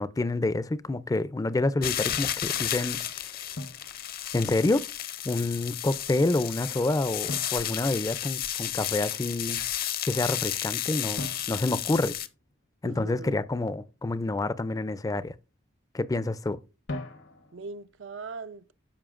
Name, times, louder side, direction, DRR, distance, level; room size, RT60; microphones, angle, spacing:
voice 1, 0.0-3.1 4.3-4.9 5.2-9.6 10.1-12.2 12.8-15.3 15.9-16.6, left 2 dB, 20° left, 0.4 m, -28 dB
sound 1, 1.8-12.3, left 11 dB, 55° left, 0.6 m, -32 dB
Drum, 3.6-4.7 7.3-8.7 11.2-12.9 16.9-17.8, left 1 dB, 80° left, 1.0 m, -41 dB
voice 2, 12.8-13.4 17.5-18.7, right 4 dB, 80° right, 0.5 m, -40 dB
12.5 x 5.3 x 2.4 m
head